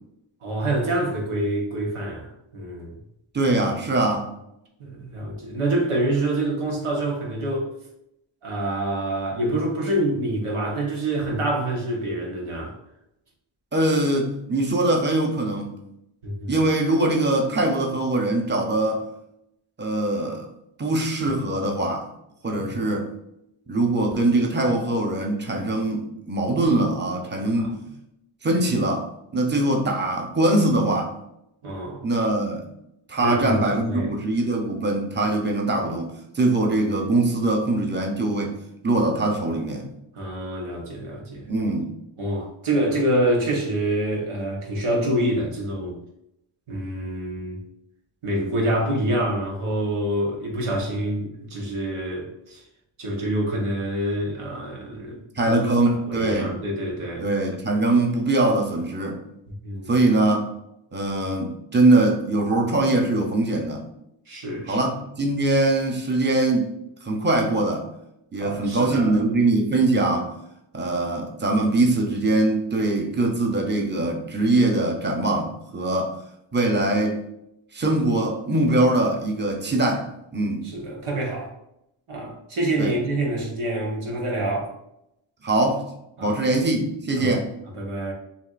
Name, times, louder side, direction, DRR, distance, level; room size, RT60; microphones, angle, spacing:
voice 1, 0.4-3.0 4.8-7.7 8.4-12.7 16.2-16.7 22.6-22.9 27.6-27.7 31.6-32.1 33.2-34.2 40.1-41.4 42.2-46.0 46.7-47.6 48.2-52.6 53.0-55.6 56.1-57.3 59.5-59.9 64.3-64.8 68.4-69.2 80.6-81.5 82.1-84.7 86.2-86.4 87.2-87.3 87.8-88.1, right 1 dB, 90° right, -2 dB, 1.2 m, -26 dB
voice 2, 3.3-4.3 13.7-15.8 16.5-19.0 19.8-20.4 20.8-22.1 22.4-23.1 23.7-27.7 28.4-31.1 32.0-32.7 33.1-38.5 38.8-39.8 41.5-41.9 55.4-56.6 57.2-59.2 59.9-60.5 60.9-63.8 64.7-66.7 67.0-67.9 68.3-70.3 70.7-76.1 76.5-77.2 77.7-80.6 82.8-83.0 85.4-85.8 86.2-87.5, right 2 dB, 20° right, 2 dB, 0.8 m, -22 dB
7.0 x 2.6 x 2.5 m, 0.79 s
cardioid pair, 60°, 49 cm